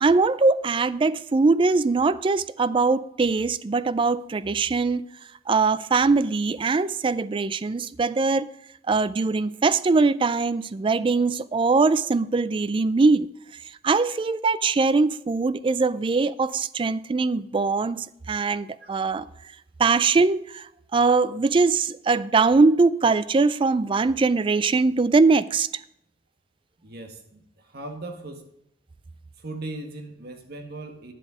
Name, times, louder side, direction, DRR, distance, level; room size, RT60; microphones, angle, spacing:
voice 1, 0.0-5.1 5.5-8.5 8.9-13.3 13.8-19.3 19.8-25.7, right 4 dB, 30° right, 0.3 m, -22 dB
voice 2, 26.8-28.5 29.4-31.1, right 2 dB, 60° right, 1.6 m, -38 dB
10.0 x 7.5 x 5.0 m
head